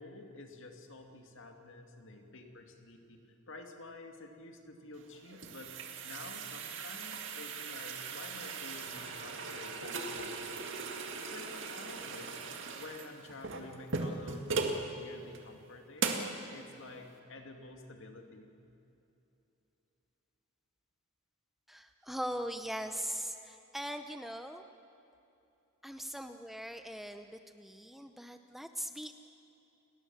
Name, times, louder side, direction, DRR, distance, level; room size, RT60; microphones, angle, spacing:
voice 1, 0.0-3.2 3.5-5.7 6.0-10.8 11.3-12.3 12.7-18.5, left 2 dB, 60° left, 4 dB, 2.5 m, -50 dB
sound 1, 5.0-14.8 15.3-15.4 16.0-16.4, right 4 dB, 60° right, 2.2 m, -38 dB
voice 2, 21.7-24.6 25.8-29.1, equal, ahead, 7 dB, 0.7 m, -40 dB
29.5 x 19.0 x 7.4 m, 2.9 s
head